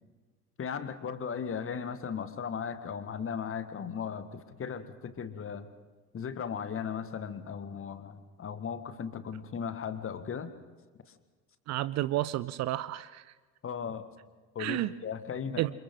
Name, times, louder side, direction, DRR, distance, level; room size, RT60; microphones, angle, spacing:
voice 1, 0.6-5.7 6.1-10.5 13.6-14.0 14.6-15.6, left 7 dB, 30° left, 11 dB, 1.8 m, -37 dB
voice 2, 11.7-13.2 14.6-14.9 15.6-15.7, right 15 dB, 40° right, 18 dB, 0.6 m, -31 dB
29.0 x 27.5 x 3.9 m, 1.4 s
figure-of-eight pair, 65°, 43 cm